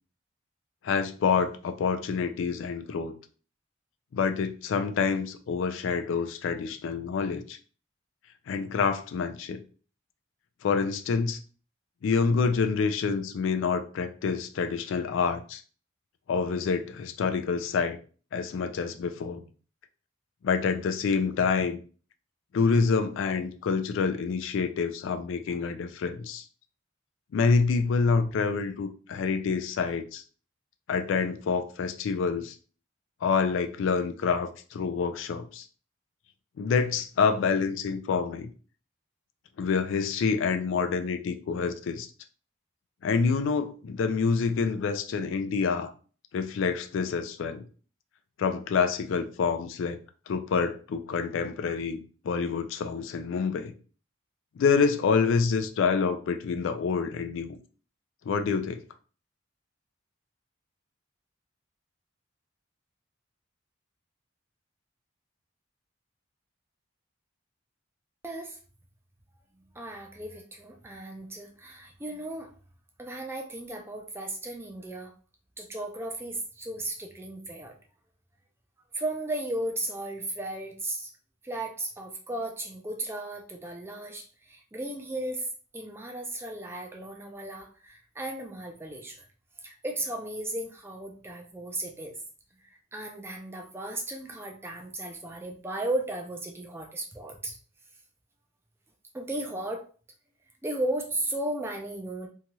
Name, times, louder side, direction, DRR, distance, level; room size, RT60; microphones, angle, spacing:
voice 1, 0.8-3.1 4.1-7.6 8.5-9.6 10.6-11.4 12.0-15.6 16.3-18.0 18.3-19.4 20.4-21.8 22.5-26.4 27.3-30.2 30.9-32.5 33.2-35.6 36.6-38.5 39.6-42.1 43.0-45.9 46.3-47.6 48.4-50.0 50.3-53.7 54.6-57.6 58.3-58.8, left 5 dB, 65° left, 0.3 m, -27 dB
voice 2, 68.2-68.6 69.7-72.5 73.0-75.1 75.6-77.7 78.9-81.1 81.4-85.5 85.7-89.3 89.6-92.2 92.6-97.6 99.1-99.9 100.6-102.3, right 1 dB, 10° right, 0.4 m, -35 dB
2.7 x 2.3 x 2.9 m
head